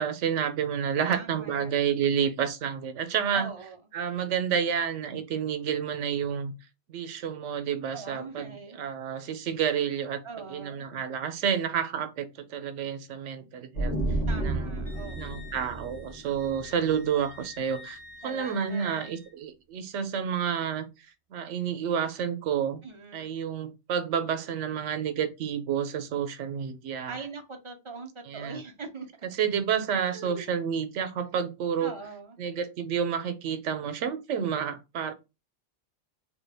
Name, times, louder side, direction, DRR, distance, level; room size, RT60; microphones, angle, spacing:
voice 1, 0.0-3.5 3.9-6.5 6.9-10.2 10.5-14.0 14.4-14.8 15.1-18.0 18.2-20.9 21.3-22.8 23.1-27.2 28.3-28.6 29.3-31.9 32.4-35.1, right 8 dB, 85° right, 0.9 m, -30 dB
voice 2, 1.0-1.7 3.3-3.8 7.9-8.8 9.2-9.5 10.2-10.9 14.3-15.4 18.2-19.0 22.8-23.4 27.1-29.1 30.0-30.5 31.8-32.4, right 4 dB, 45° right, 0.4 m, -42 dB
sound 1, 13.7-17.4, right 2 dB, 85° left, 1.5 m, -32 dB
Wind instrument woodwind instrument, 14.8-19.3, left 3 dB, 10° left, 1.1 m, -49 dB
3.4 x 2.2 x 3.3 m
omnidirectional pair, 1.2 m